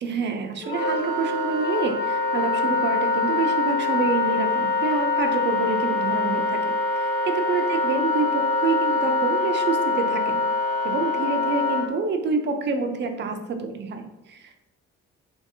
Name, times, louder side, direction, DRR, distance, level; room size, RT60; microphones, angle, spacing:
voice 1, 0.0-10.4 10.8-14.7, right 4 dB, 35° right, 5 dB, 0.4 m, -27 dB
Wind instrument woodwind instrument, 0.6-11.8, left 3 dB, 75° left, 1.2 m, -24 dB
3.1 x 2.6 x 2.6 m, 0.94 s
cardioid pair, 90°, 30 cm